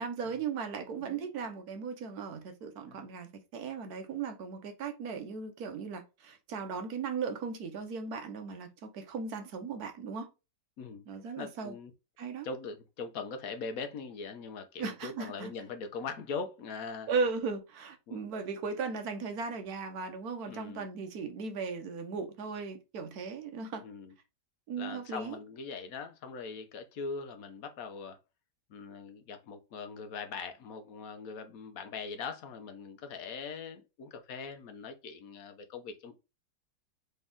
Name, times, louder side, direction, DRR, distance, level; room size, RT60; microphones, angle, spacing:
voice 1, 0.0-10.3 11.1-11.7 12.2-12.5 14.8-15.5 17.1-23.8 24.7-25.4, right 5 dB, 65° right, 1.3 m, -37 dB
voice 2, 1.0-1.3 2.9-3.1 10.8-11.0 11.4-11.9 12.4-17.1 18.1-18.3 20.5-20.9 23.8-24.1 24.8-28.2 28.7-36.2, left 5 dB, 60° left, 1.1 m, -41 dB
4.0 x 3.5 x 3.5 m
omnidirectional pair, 1.9 m